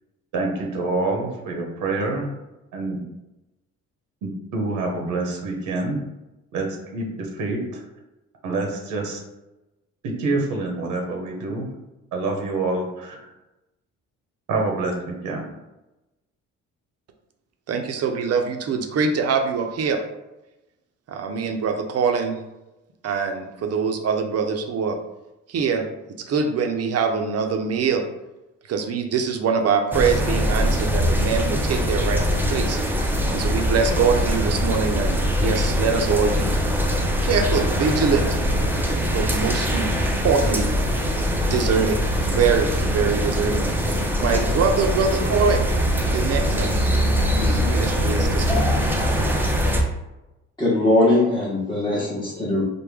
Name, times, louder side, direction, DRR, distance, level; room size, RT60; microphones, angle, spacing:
voice 1, 0.3-2.3 2.7-3.0 4.2-6.0 6.5-7.8 8.4-9.2 10.0-11.7 12.1-13.3 14.5-15.5, right 2 dB, 85° right, 0 dB, 0.8 m, -26 dB
voice 2, 17.7-20.0 21.1-22.4 23.0-25.0 25.5-25.9 26.3-28.0 28.7-36.5 37.2-38.3 39.1-39.9 40.2-40.7 41.5-42.0 42.3-43.6 44.2-45.6 46.1-46.7 47.4-48.7, right 5 dB, 55° right, 4 dB, 0.6 m, -23 dB
sound 1, 29.9-49.8, equal, 5° right, 0.5 m, -22 dB
voice 3, 50.6-52.6, left 1 dB, 15° left, -7 dB, 0.9 m, -20 dB
3.3 x 2.2 x 3.4 m, 0.98 s
cardioid pair, 90°, 30 cm